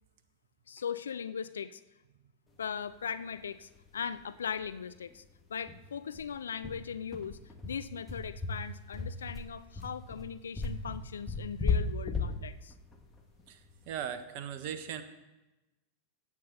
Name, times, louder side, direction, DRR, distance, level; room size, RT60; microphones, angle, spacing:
voice 1, 0.7-1.8 2.6-5.2 5.5-12.7, left 7 dB, 70° left, 14 dB, 0.4 m, -39 dB
sound 1, 3.8-3.9 4.2-4.3 4.6-4.7 5.1-5.2 5.7-14.1, left 4 dB, 10° left, 1.8 m, -35 dB
voice 2, 13.9-15.0, right 8 dB, 45° right, 10 dB, 1.0 m, -38 dB
16.0 x 8.4 x 4.0 m, 1.0 s
figure-of-eight pair, 90°, 0 cm